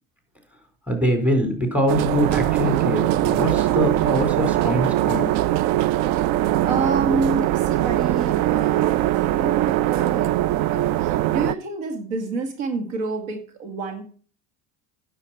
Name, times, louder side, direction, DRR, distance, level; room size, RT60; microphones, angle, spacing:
voice 1, 0.9-5.2, equal, 5° right, 4 dB, 4.2 m, -23 dB
sound 1, 1.9-11.5, right 14 dB, 60° right, 0.6 m, -21 dB
voice 2, 6.6-10.3 10.7-14.0, right 3 dB, 75° right, 5 dB, 2.3 m, -28 dB
9.6 x 7.2 x 5.9 m, 0.41 s
hypercardioid pair, 85°, 40 cm